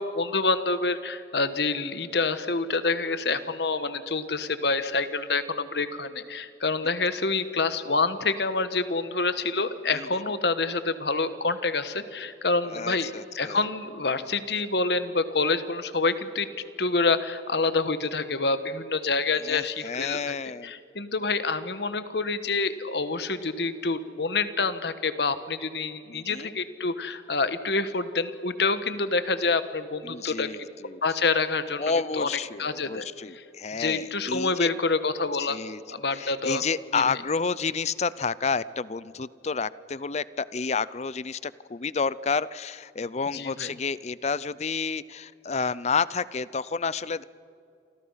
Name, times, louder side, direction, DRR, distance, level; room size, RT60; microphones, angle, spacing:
voice 1, 0.0-16.5 16.8-20.3 20.6-30.5 31.0-32.3 32.6-33.1 33.3-33.4 33.8-35.6 35.9-36.6 36.9-37.2 43.3-43.7, left 3 dB, 65° left, 12 dB, 1.3 m, -27 dB
voice 2, 12.7-13.6 19.4-20.7 26.1-26.5 30.0-31.0 31.8-34.7 35.4-35.8 36.1-47.2, left 5 dB, 35° left, 19 dB, 0.5 m, -30 dB
28.5 x 25.5 x 5.7 m, 2.6 s
head